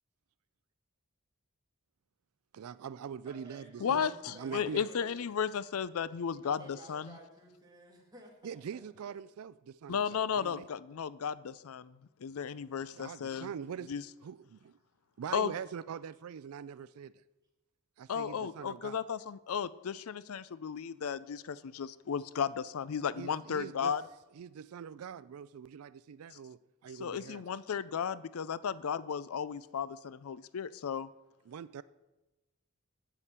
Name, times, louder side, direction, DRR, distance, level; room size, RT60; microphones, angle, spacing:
voice 1, 2.5-4.9 8.4-10.7 12.9-13.9 14.2-14.8 15.2-17.2 18.0-19.0 23.2-23.9 24.3-27.4 31.5-31.8, right 7 dB, 75° right, 17 dB, 0.4 m, -43 dB
voice 2, 3.2-5.2 6.4-9.1, right 1 dB, 20° right, 0 dB, 2.1 m, -54 dB
voice 3, 3.8-7.1 9.9-11.9 12.2-13.5 13.9-14.0 15.3-15.5 18.1-24.0 27.0-31.1, left 7 dB, 70° left, 18 dB, 0.4 m, -34 dB
9.7 x 8.2 x 7.4 m, 1.0 s
head